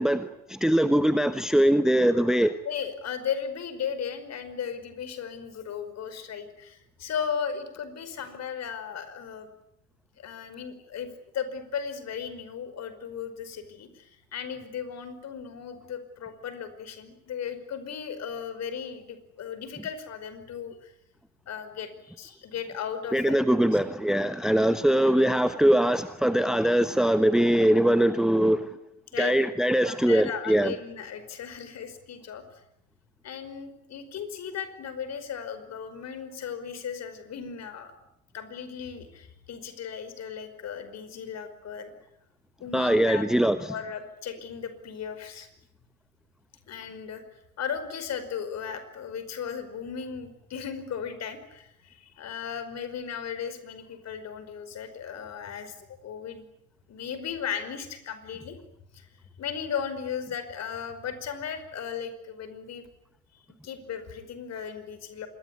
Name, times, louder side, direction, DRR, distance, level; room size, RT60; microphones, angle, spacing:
voice 1, 0.0-2.5 23.1-28.7 29.2-30.7 42.7-43.7, right 1 dB, ahead, 12 dB, 1.2 m, -22 dB
voice 2, 2.6-9.5 10.2-20.9 21.5-23.8 29.1-29.4 29.8-32.4 33.2-37.9 38.3-41.9 42.6-45.5 46.7-47.2 47.6-56.5 56.9-58.6 58.9-59.1 59.4-62.8 63.6-65.3, left 7 dB, 40° left, 11 dB, 5.2 m, -36 dB
26.5 x 22.0 x 9.7 m, 0.80 s
figure-of-eight pair, 70°, 42 cm